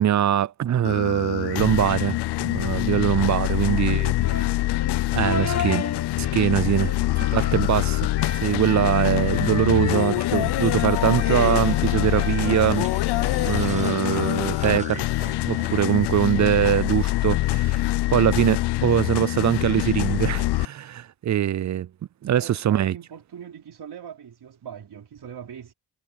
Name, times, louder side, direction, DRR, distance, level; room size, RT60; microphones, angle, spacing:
voice 1, 0.0-4.1 5.1-5.8 6.2-8.1 8.4-12.9 13.4-15.1 15.4-21.9 22.2-22.9, right 11 dB, 45° right, 0.5 m, -23 dB
sound 1, 0.8-20.7, left 18 dB, 85° left, 0.5 m, -24 dB
voice 2, 3.6-4.2 5.1-5.7 7.0-7.6 22.4-25.7, right 8 dB, 70° right, 4.9 m, -42 dB
sound 2, 4.2-13.3, left 5 dB, 40° left, 1.5 m, -34 dB
sound 3, 10.6-16.0, right 2 dB, 15° right, 2.0 m, -42 dB
supercardioid pair, 45°, 40 cm